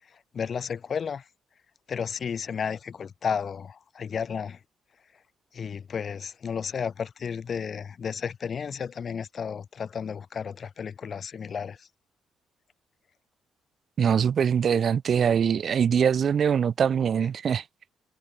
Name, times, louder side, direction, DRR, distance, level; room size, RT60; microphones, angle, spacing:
voice 1, 0.0-1.3 1.9-4.6 5.5-11.9, left 6 dB, 50° left, 4.2 m, -33 dB
voice 2, 14.0-17.6, right 7 dB, 55° right, 1.2 m, -23 dB
cardioid pair, 90°, 0 cm